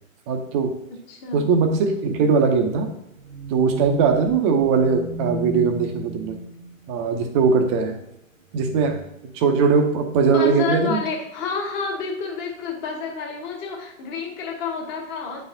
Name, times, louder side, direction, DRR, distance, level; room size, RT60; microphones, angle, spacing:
voice 1, 0.3-0.8 1.3-2.9 3.5-6.4 6.9-8.0 8.5-9.0 9.3-11.0, right 5 dB, 20° right, 5 dB, 0.6 m, -20 dB
voice 2, 0.9-1.5 10.3-15.4, left 5 dB, 25° left, 1 dB, 1.1 m, -29 dB
sound 1, 2.1-7.1 7.7-8.2 8.6-9.2 9.7-9.9 10.3-10.4, right 1 dB, 80° right, 1.0 m, -35 dB
9.1 x 4.1 x 2.7 m, 0.82 s
hypercardioid pair, 130°, 41 cm